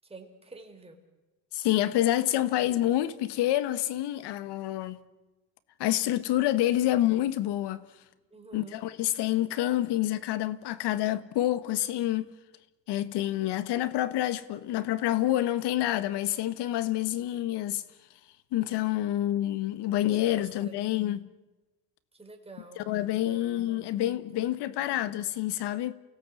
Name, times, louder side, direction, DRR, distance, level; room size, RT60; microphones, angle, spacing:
voice 1, 0.0-1.0 8.3-8.8 20.0-20.8 22.1-22.8 23.2-24.0 24.3-24.9, right 3 dB, 15° right, 4.2 m, -48 dB
voice 2, 1.5-5.0 5.8-7.8 8.5-12.3 12.9-17.8 18.5-21.2 22.9-25.9, left 14 dB, 70° left, 1.4 m, -28 dB
28.5 x 17.0 x 8.4 m
cardioid pair, 110°, 41 cm